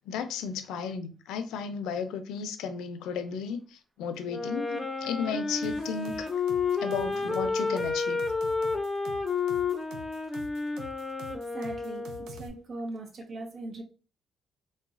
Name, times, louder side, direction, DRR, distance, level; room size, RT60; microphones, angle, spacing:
voice 1, 0.1-6.3 6.8-8.2, left 6 dB, 90° left, 0.4 m, -34 dB
Wind instrument woodwind instrument, 4.3-12.6, left 4 dB, 20° left, 0.6 m, -31 dB
sound 1, 5.6-12.5, right 2 dB, 90° right, 0.4 m, -47 dB
sound 2, 6.7-7.3, right 2 dB, 20° right, 0.9 m, -51 dB
voice 2, 11.3-13.8, right 2 dB, 50° right, 0.8 m, -40 dB
3.8 x 2.1 x 2.4 m
cardioid pair, 90°, 0 cm